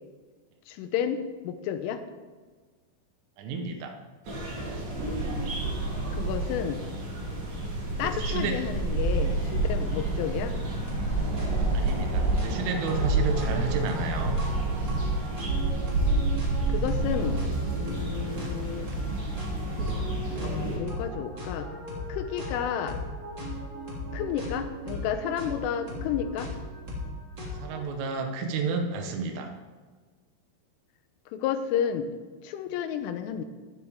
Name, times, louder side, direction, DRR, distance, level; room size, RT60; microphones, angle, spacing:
voice 1, 0.7-2.0 6.1-6.8 8.0-10.6 16.0-16.3 16.7-17.4 17.8-18.9 20.4-21.7 22.1-23.0 24.1-26.5 31.3-32.1 32.4-33.4, left 9 dB, 90° left, 9 dB, 3.4 m, -31 dB
voice 2, 3.4-4.0 8.0-8.6 11.7-14.4 27.6-29.5, right 4 dB, 85° right, 5 dB, 3.8 m, -31 dB
sound 1, 4.3-20.8, right 2 dB, 50° right, 4.6 m, -29 dB
sound 2, 10.9-11.1 11.4-27.9, left 1 dB, 30° right, 2.5 m, -37 dB
16.0 x 11.0 x 3.6 m, 1.4 s
omnidirectional pair, 5.6 m